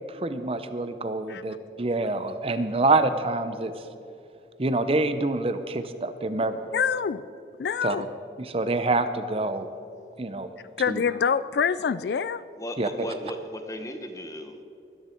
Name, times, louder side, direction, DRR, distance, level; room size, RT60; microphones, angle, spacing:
voice 1, 0.1-3.7 4.6-6.6 7.8-8.1 8.4-9.7 10.2-10.5 10.9-11.0 12.8-13.1, right 2 dB, 35° right, 10 dB, 0.6 m, -26 dB
voice 2, 6.7-7.3 7.6-8.0 10.8-12.4, left 6 dB, 65° left, 16 dB, 0.3 m, -25 dB
voice 3, 12.6-14.6, equal, 20° left, 6 dB, 1.0 m, -36 dB
21.0 x 10.5 x 4.5 m, 2.6 s
head